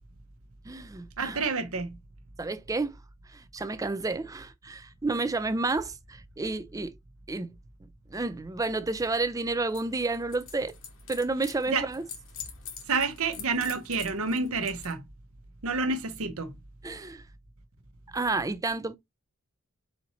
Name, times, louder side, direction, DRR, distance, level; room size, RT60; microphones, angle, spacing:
voice 1, 0.7-1.4 2.4-3.0 3.3-6.9 7.3-7.5 8.1-10.8 11.1-12.0 16.8-17.2 18.1-19.0, right 3 dB, 15° right, 0.4 m, -30 dB
voice 2, 1.2-2.0 11.7-11.9 12.9-15.0 15.6-16.5, right 4 dB, 70° right, 1.0 m, -29 dB
sound 1, 9.7-14.9, left 7 dB, 65° left, 1.4 m, -46 dB
4.3 x 4.2 x 2.8 m
head